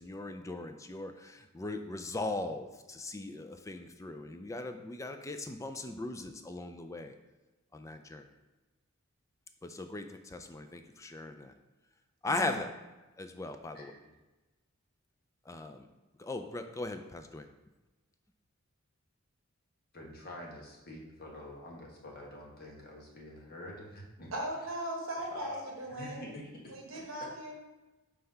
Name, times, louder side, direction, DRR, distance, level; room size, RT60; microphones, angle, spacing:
voice 1, 0.0-7.1 7.7-8.2 9.6-11.5 12.2-12.7 13.2-13.9 15.5-15.9 16.2-17.5, left 2 dB, 15° left, 7 dB, 0.3 m, -39 dB
voice 2, 12.3-12.6 24.3-26.3 26.7-27.5, right 1 dB, 65° right, 0 dB, 1.2 m, -38 dB
voice 3, 13.7-14.1 19.9-24.3 25.3-25.6 25.9-26.5, left 1 dB, 45° left, -1 dB, 1.2 m, -46 dB
5.7 x 3.4 x 5.4 m, 1.1 s
head